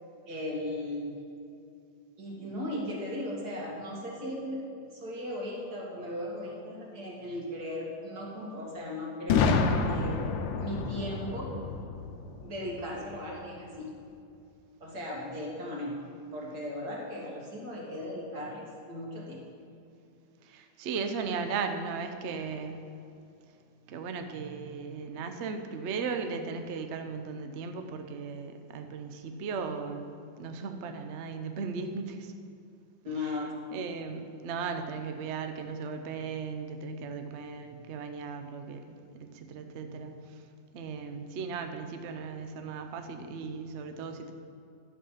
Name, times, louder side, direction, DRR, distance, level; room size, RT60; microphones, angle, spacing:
voice 1, 0.3-1.2 2.2-10.2 10.6-11.6 12.4-13.9 14.8-16.0 16.3-19.4 33.0-33.5, left 1 dB, 55° right, -3 dB, 2.5 m, -37 dB
Boom, 9.3-13.1, left 4 dB, 85° left, 1.5 m, -29 dB
voice 2, 20.4-22.8 23.9-32.3 33.2-33.4 33.7-40.4 40.7-44.3, right 5 dB, 70° right, 6 dB, 0.6 m, -37 dB
11.0 x 7.2 x 5.7 m, 2.6 s
omnidirectional pair, 2.0 m